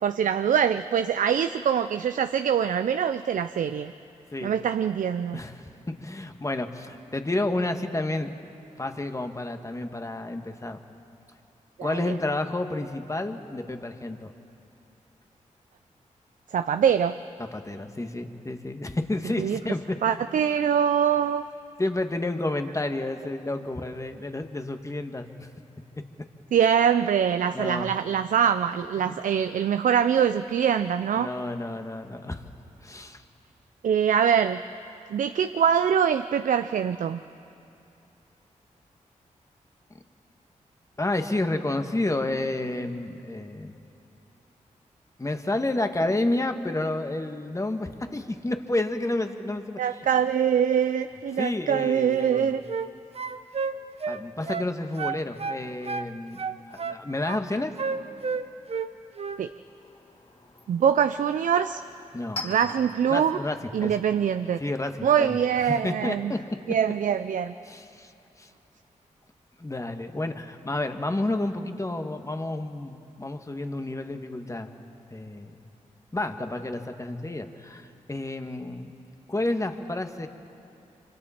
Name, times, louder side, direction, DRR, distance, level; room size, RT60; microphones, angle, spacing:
voice 1, 0.0-3.9 4.4-5.4 11.8-12.1 16.5-17.1 19.4-19.6 20.0-21.4 26.5-31.3 33.8-34.6 35.1-37.2 49.8-52.6 59.4-59.5 60.7-61.8 62.4-63.4 63.7-64.6 65.0-66.3 66.7-67.5, right 8 dB, 75° right, 10 dB, 0.5 m, -23 dB
voice 2, 5.3-10.8 11.8-14.3 17.5-20.2 21.8-25.5 27.5-27.9 29.0-29.2 31.1-32.4 32.8-33.2 41.0-43.7 45.2-50.0 51.4-52.6 54.1-56.4 56.7-57.7 62.1-62.5 63.1-64.0 64.6-66.4 67.6-68.1 68.4-68.5 69.6-74.7 75.1-75.6 76.1-78.9 79.3-80.3, left 2 dB, 25° left, 6 dB, 1.6 m, -30 dB
sound 1, 52.2-52.9 53.1-54.7 55.0-56.1 56.4-57.4 57.8-58.9 59.2-59.4, right 5 dB, 50° right, 0.9 m, -31 dB
Chink clink, 59.4-64.9, left 2 dB, 50° left, 4.6 m, -44 dB
25.5 x 25.5 x 4.4 m, 2.8 s
cardioid pair, 55°, 13 cm